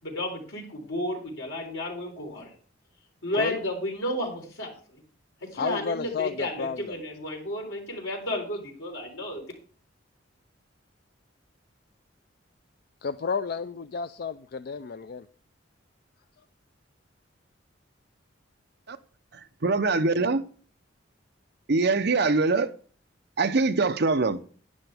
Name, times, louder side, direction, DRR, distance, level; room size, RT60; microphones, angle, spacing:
voice 1, 0.0-2.5 3.2-4.7 5.5-9.4, left 1 dB, 80° left, 4.0 m, -32 dB
voice 2, 5.5-7.0 13.0-15.3, left 5 dB, 50° left, 0.4 m, -31 dB
voice 3, 19.6-20.5 21.7-22.7 23.4-24.4, right 3 dB, 55° right, 0.7 m, -23 dB
12.0 x 10.0 x 3.5 m
head